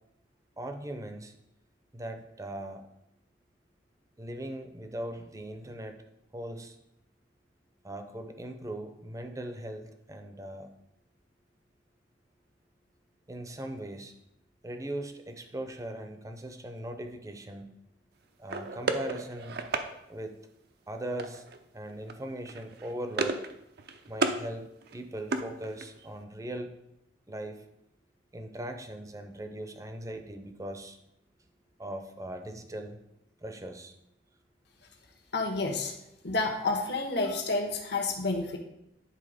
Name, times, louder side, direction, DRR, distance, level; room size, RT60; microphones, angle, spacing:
voice 1, 0.6-1.3 1.9-2.9 4.2-6.0 6.3-6.8 7.8-10.7 13.3-14.1 14.6-17.7 18.4-19.6 20.1-20.4 20.9-21.4 21.7-23.4 24.1-26.7 27.3-27.7 28.3-31.0 31.8-33.0 33.4-33.9, right 1 dB, 20° right, 6 dB, 0.7 m, -39 dB
sound 1, 18.5-19.9 21.2-21.6 21.9-22.1 22.5-23.5 23.8-24.4 24.8-26.1, right 3 dB, 60° right, 0.6 m, -33 dB
voice 2, 35.3-35.9 36.2-38.6, left 3 dB, 65° left, 3 dB, 1.3 m, -29 dB
10.0 x 4.0 x 5.1 m, 0.83 s
head